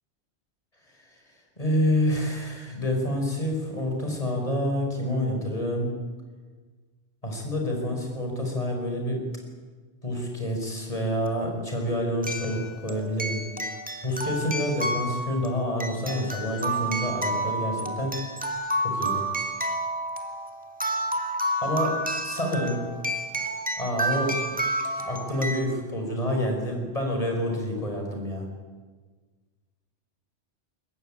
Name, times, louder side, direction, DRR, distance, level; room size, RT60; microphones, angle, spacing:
voice 1, 1.6-6.0 7.2-9.2 10.0-13.4 14.0-18.1 18.8-19.2 21.6-22.0 22.2-22.8 23.8-24.6 25.1-28.5, equal, 30° left, 1 dB, 5.9 m, -28 dB
sound 1, 10.8-10.9 12.2-25.6, right 1 dB, 5° right, 2.2 m, -30 dB
23.0 x 20.0 x 9.2 m, 1.4 s
omnidirectional pair, 1.2 m